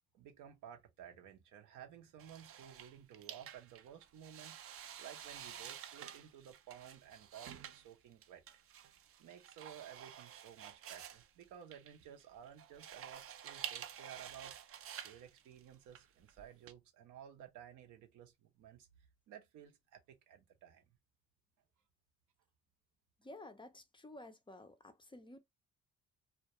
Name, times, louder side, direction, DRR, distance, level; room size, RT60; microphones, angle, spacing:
voice 1, 0.1-8.4 8.8-8.9 9.2-14.5 14.9-18.9 19.3-20.9, right 9 dB, 85° right, 0.7 m, -55 dB
sound 1, 2.2-16.7, right 9 dB, 50° right, 0.4 m, -50 dB
voice 2, 23.2-25.4, left 1 dB, 15° left, 0.4 m, -53 dB
2.2 x 2.2 x 2.7 m
cardioid pair, 90°, 30 cm